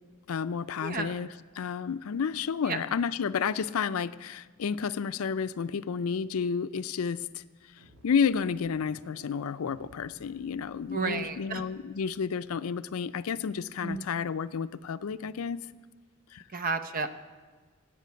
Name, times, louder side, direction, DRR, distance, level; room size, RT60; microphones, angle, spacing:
voice 1, 0.3-1.3 1.5-7.4 8.0-15.6 16.3-16.4, left 6 dB, 85° left, 14 dB, 0.4 m, -31 dB
voice 2, 0.8-1.2 2.7-2.8 10.9-11.6 13.8-14.0 16.5-17.1, right 4 dB, 40° right, 9 dB, 0.7 m, -32 dB
sound 1, 7.7-12.6, equal, 90° right, 1.8 m, -56 dB
16.0 x 5.9 x 9.2 m, 1.4 s
head